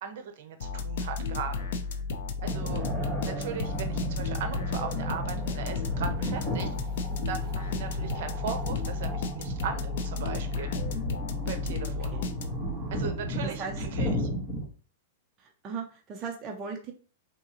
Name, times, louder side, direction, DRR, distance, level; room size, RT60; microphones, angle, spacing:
voice 1, 0.0-1.7 2.4-2.8 3.2-6.7 7.3-10.7 11.5-12.1 12.9-14.3, right 7 dB, 55° right, 7 dB, 0.7 m, -38 dB
sound 1, 0.6-12.8, left 4 dB, 65° left, 0.5 m, -33 dB
sound 2, 2.4-14.7, equal, 25° left, 1.5 m, -34 dB
voice 2, 13.4-13.7 15.4-16.9, right 5 dB, 20° right, 1 dB, 0.4 m, -38 dB
3.7 x 2.8 x 2.9 m, 0.37 s
supercardioid pair, 165°, 0 cm